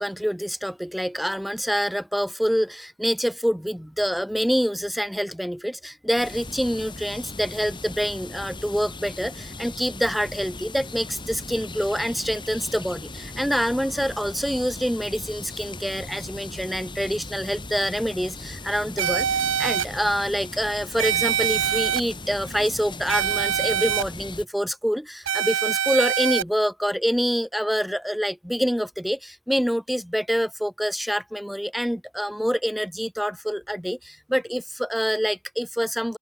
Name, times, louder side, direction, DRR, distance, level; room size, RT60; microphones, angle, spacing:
voice 1, 0.0-36.2, equal, ahead, 0.3 m, -26 dB
sound 1, 6.2-24.4, left 2 dB, 25° left, 4.3 m, -38 dB
sound 2, 19.0-19.9 21.0-22.0 23.1-24.0 25.3-26.4, right 9 dB, 85° right, 0.9 m, -24 dB
open air
head